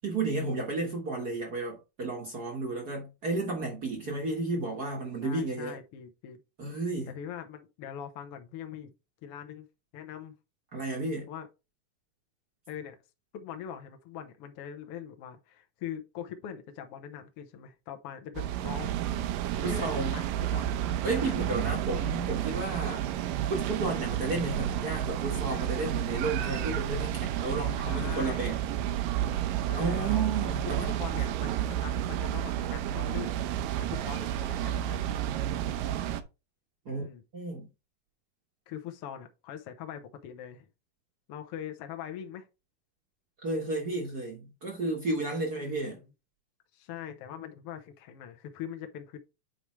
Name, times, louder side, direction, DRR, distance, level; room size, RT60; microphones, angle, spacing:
voice 1, 0.0-5.8 6.6-7.1 10.7-11.3 19.6-20.2 21.0-23.1 23.5-28.6 29.7-30.9 36.8-37.0 37.3-37.7 43.4-46.0, right 2 dB, 55° right, 1.0 m, -32 dB
voice 2, 5.2-6.4 7.1-8.9 9.2-9.6 9.9-10.3 11.3-11.5 12.7-13.0 13.3-18.9 19.6-20.8 21.1-21.4 26.4-26.8 27.8-28.5 29.6-30.3 30.7-33.4 33.8-35.2 36.9-37.2 38.7-40.7 41.3-42.5 45.5-46.1 46.7-49.2, left 9 dB, 70° left, 1.4 m, -42 dB
sound 1, 18.4-36.2, right 11 dB, 85° right, 2.3 m, -31 dB
8.9 x 4.8 x 3.2 m
omnidirectional pair, 3.9 m